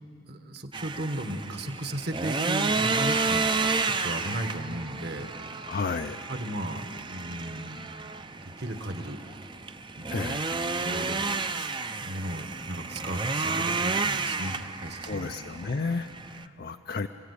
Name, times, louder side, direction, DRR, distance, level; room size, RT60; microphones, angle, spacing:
voice 1, 0.3-3.5 3.8-5.3 6.3-7.9 8.6-9.2 10.0-10.2 10.8-15.3, right 1 dB, 50° right, 7 dB, 1.5 m, -35 dB
sound 1, 0.7-16.4, right 4 dB, 25° right, 0.6 m, -31 dB
voice 2, 5.7-6.2 10.1-10.5 15.0-17.1, left 4 dB, 45° left, 7 dB, 0.5 m, -32 dB
27.5 x 16.5 x 8.3 m, 2.8 s
head